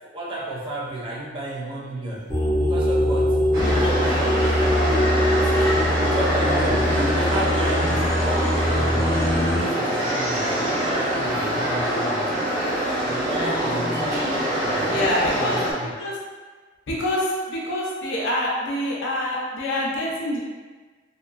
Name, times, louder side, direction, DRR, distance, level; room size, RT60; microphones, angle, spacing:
voice 1, 0.0-3.4 4.5-5.7 6.0-12.5 13.0-15.9, right 1 dB, 30° right, -6 dB, 0.5 m, -32 dB
sound 1, 2.3-9.6, left 1 dB, 15° left, 0.7 m, -22 dB
sound 2, 3.5-15.7, right 1 dB, 50° right, 1.2 m, -24 dB
voice 2, 3.6-4.7 5.5-5.8 14.0-14.4 14.9-15.6 16.0-16.2 16.9-20.4, left 1 dB, 80° left, -4 dB, 0.6 m, -27 dB
2.9 x 2.2 x 2.2 m, 1.4 s
head